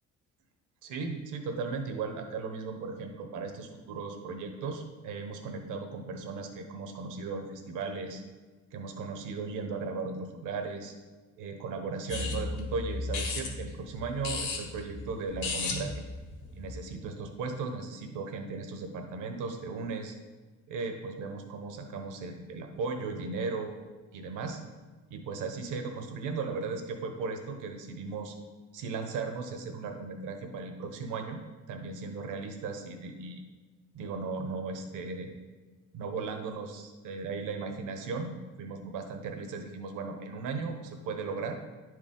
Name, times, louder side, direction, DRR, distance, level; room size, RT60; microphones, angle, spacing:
voice 1, 0.8-8.2 8.7-10.9 11.4-16.0 16.5-20.1 20.7-23.7 24.1-24.6 25.1-28.4 28.7-31.4 31.7-33.4 33.9-35.3 35.9-41.6, right 4 dB, 90° right, 5 dB, 1.0 m, -36 dB
sound 1, 12.1-16.9, left 3 dB, 80° left, 1.8 m, -35 dB
10.0 x 4.8 x 3.7 m, 1.3 s
cardioid pair, 90°, 30 cm